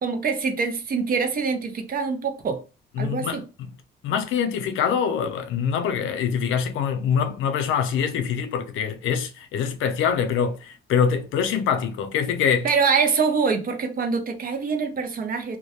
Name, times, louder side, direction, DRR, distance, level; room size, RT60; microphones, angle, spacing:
voice 1, 0.0-2.6 3.0-3.4 12.6-15.6, right 5 dB, 45° right, 0.6 m, -24 dB
voice 2, 3.0-3.7 4.0-12.7, left 7 dB, 80° left, 0.5 m, -24 dB
2.2 x 2.1 x 2.8 m
cardioid pair, 90°, 20 cm